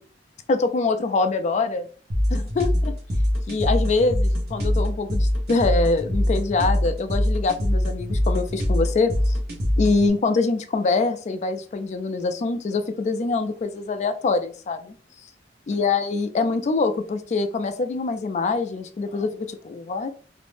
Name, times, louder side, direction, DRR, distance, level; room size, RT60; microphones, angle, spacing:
voice 1, 0.5-1.9 2.3-2.9 3.5-9.4 9.8-15.0 15.7-20.2, left 3 dB, 40° left, 9 dB, 0.3 m, -24 dB
sound 1, 2.1-10.1, left 1 dB, 60° right, 0.9 m, -23 dB
2.5 x 2.1 x 3.2 m, 0.41 s
head